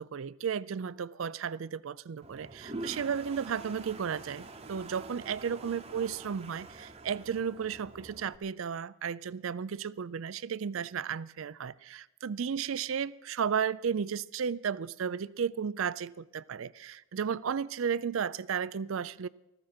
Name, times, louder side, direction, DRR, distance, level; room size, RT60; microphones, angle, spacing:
voice 1, 0.0-19.3, right 7 dB, 75° right, 0.4 m, -34 dB
Toilet flush, 2.2-8.4, right 2 dB, 30° right, 0.9 m, -46 dB
19.0 x 15.0 x 4.4 m
head